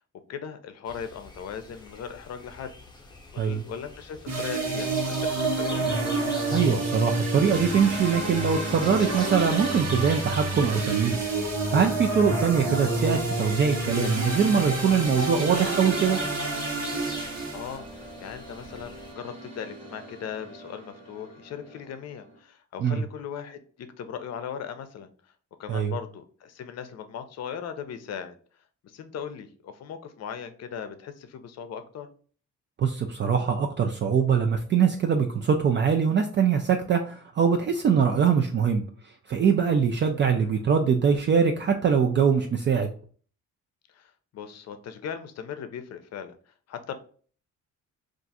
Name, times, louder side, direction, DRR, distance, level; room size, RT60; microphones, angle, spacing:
voice 1, 0.3-2.7 3.0-3.1 3.3-5.8 17.2-17.9 18.2-25.1 25.6-28.4 28.8-32.1 40.3-40.7 43.9-46.4 46.7-46.9, left 8 dB, 60° left, 9 dB, 0.6 m, -38 dB
sound 1, 0.9-19.1, left 1 dB, 15° left, 0.8 m, -44 dB
sound 2, 4.3-17.8, right 2 dB, 55° right, 1.1 m, -29 dB
voice 2, 6.5-11.3 11.7-16.2 22.8-23.0 25.7-25.9 32.8-38.8 39.3-42.9, right 6 dB, 40° right, 4 dB, 0.4 m, -23 dB
sound 3, 12.1-22.4, right 1 dB, 85° right, 1.0 m, -45 dB
2.5 x 2.4 x 4.0 m, 0.44 s
cardioid pair, 90°, 30 cm